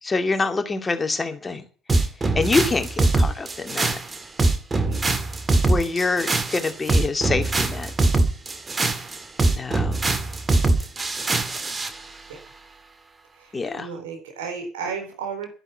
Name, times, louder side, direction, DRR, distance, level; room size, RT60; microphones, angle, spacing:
voice 1, 0.0-1.6 2.3-4.0 5.7-7.9 9.5-10.0 13.5-13.9, left 3 dB, 25° left, 2.4 m, -25 dB
sound 1, 1.9-12.0, right 2 dB, 25° right, 1.9 m, -22 dB
voice 2, 13.7-15.5, right 6 dB, 75° right, 4.3 m, -33 dB
12.0 x 11.0 x 7.7 m
figure-of-eight pair, 55°, 0 cm